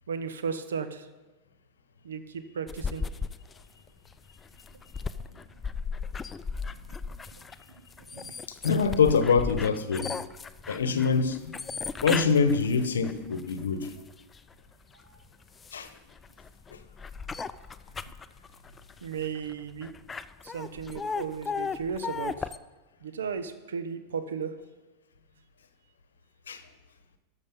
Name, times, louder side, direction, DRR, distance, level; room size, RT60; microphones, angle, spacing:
voice 1, 0.1-1.1 2.0-3.0 8.1-8.3 19.0-19.9 20.4-22.5 23.0-24.5, right 6 dB, 85° right, 0.8 m, -35 dB
sound 1, 2.7-14.4 14.9-22.6, left 5 dB, 20° left, 0.4 m, -36 dB
voice 2, 8.6-10.1 10.7-11.5 12.0-13.9 15.7-15.9 26.5-26.6, left 5 dB, 85° left, 0.9 m, -24 dB
13.0 x 6.4 x 5.2 m
hypercardioid pair, 95°, 0 cm